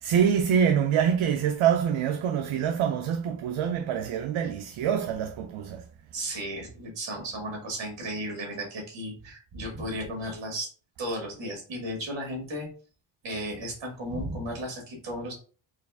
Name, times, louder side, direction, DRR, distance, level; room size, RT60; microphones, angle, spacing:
voice 1, 0.0-5.8, right 8 dB, 75° right, 0.6 m, -25 dB
voice 2, 6.1-10.7 11.0-12.7 13.2-15.3, equal, 60° right, 1.9 m, -34 dB
4.7 x 2.4 x 3.4 m
wide cardioid pair, 140°, 49 cm